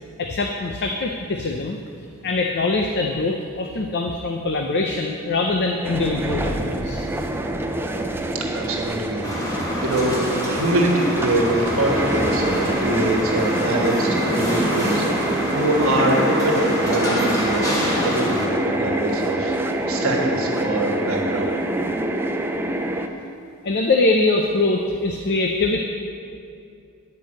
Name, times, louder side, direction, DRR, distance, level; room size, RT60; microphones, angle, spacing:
voice 1, 0.2-1.8 2.2-7.1 23.6-25.8, left 3 dB, 50° left, 2 dB, 0.6 m, -23 dB
sound 1, 5.8-23.1, right 1 dB, 10° right, 0.4 m, -26 dB
voice 2, 8.3-21.6, right 1 dB, 65° right, 0 dB, 1.4 m, -24 dB
sound 2, 9.2-18.5, equal, 15° left, 1.4 m, -26 dB
9.6 x 5.3 x 7.7 m, 2.4 s
head